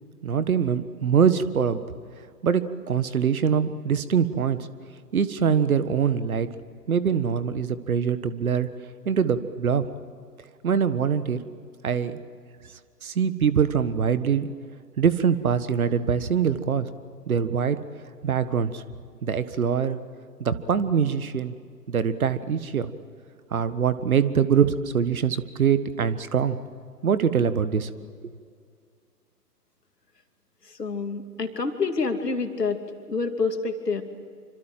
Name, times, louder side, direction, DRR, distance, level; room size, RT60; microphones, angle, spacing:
voice 1, 0.2-1.8 2.4-4.6 5.1-6.5 6.9-8.7 9.0-9.8 10.6-11.4 11.8-12.2 13.0-14.5 15.0-16.9 17.3-17.8 18.2-18.8 19.2-20.0 20.4-21.5 21.9-22.9 23.5-26.6 27.0-27.9, right 7 dB, 60° right, 13 dB, 1.6 m, -23 dB
voice 2, 30.6-32.8 33.1-34.0, left 4 dB, 75° left, 6 dB, 2.8 m, -27 dB
26.5 x 25.5 x 7.7 m, 2.1 s
figure-of-eight pair, 125°, 48 cm